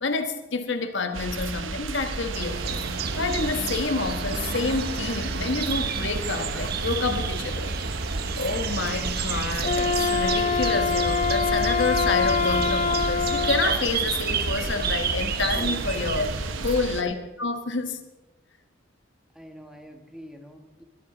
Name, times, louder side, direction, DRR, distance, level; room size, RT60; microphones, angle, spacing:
voice 1, 0.0-2.9 3.2-7.7 8.4-18.0, left 3 dB, 65° left, 1.2 m, -28 dB
sound 1, 1.1-17.0, right 3 dB, 80° right, 0.9 m, -33 dB
sound 2, 2.0-16.8, right 5 dB, 50° right, 1.0 m, -30 dB
Wind instrument woodwind instrument, 9.6-13.7, left 6 dB, 35° left, 0.4 m, -25 dB
voice 2, 15.5-15.9 19.3-20.8, equal, 5° right, 1.5 m, -44 dB
23.0 x 13.0 x 3.9 m
head